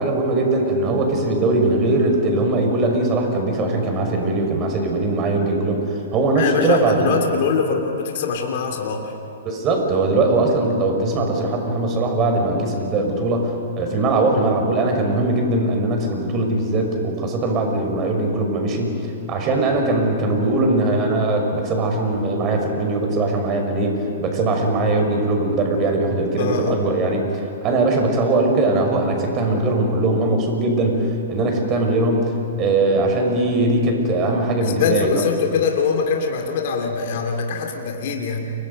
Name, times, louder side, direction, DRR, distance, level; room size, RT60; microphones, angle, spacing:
voice 1, 0.0-7.2 9.4-19.0 19.3-23.9 24.2-27.2 27.6-32.3 32.6-35.3, right 2 dB, 30° right, 3 dB, 5.4 m, -20 dB
voice 2, 6.4-9.1 26.4-26.8 34.6-38.5, left 5 dB, 55° left, 2 dB, 2.9 m, -23 dB
29.5 x 24.0 x 5.4 m, 2.7 s
hypercardioid pair, 120°, 0 cm